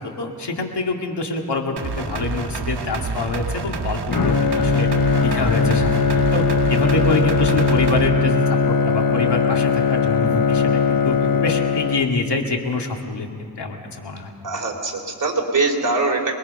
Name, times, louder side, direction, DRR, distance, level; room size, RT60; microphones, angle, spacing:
voice 1, 0.0-4.9 5.2-11.2 11.4-13.3 13.6-14.3, left 3 dB, 75° left, 2 dB, 2.3 m, -25 dB
sound 1, 1.8-8.1, right 4 dB, 70° right, 1.4 m, -28 dB
Bowed string instrument, 4.1-12.4, left 4 dB, 55° left, 1.0 m, -19 dB
voice 2, 14.4-16.3, right 3 dB, 45° right, 1 dB, 3.5 m, -22 dB
26.0 x 21.5 x 5.5 m, 2.2 s
wide cardioid pair, 85°, 41 cm